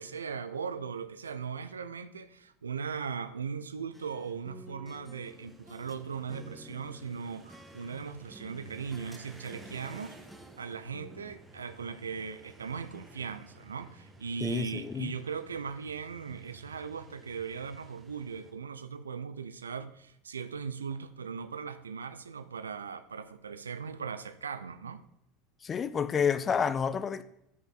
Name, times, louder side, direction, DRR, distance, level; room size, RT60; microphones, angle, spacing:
voice 1, 0.0-10.2 10.6-25.0, right 6 dB, 80° right, 0.5 m, -39 dB
sound 1, 3.9-6.0 6.3-9.2 9.5-11.3, equal, 5° right, 0.8 m, -52 dB
sound 2, 5.2-18.5, right 2 dB, 20° right, 1.4 m, -55 dB
voice 2, 14.4-15.1 25.6-27.2, left 7 dB, 30° left, 0.5 m, -29 dB
10.5 x 5.3 x 3.8 m
figure-of-eight pair, 75°, 0 cm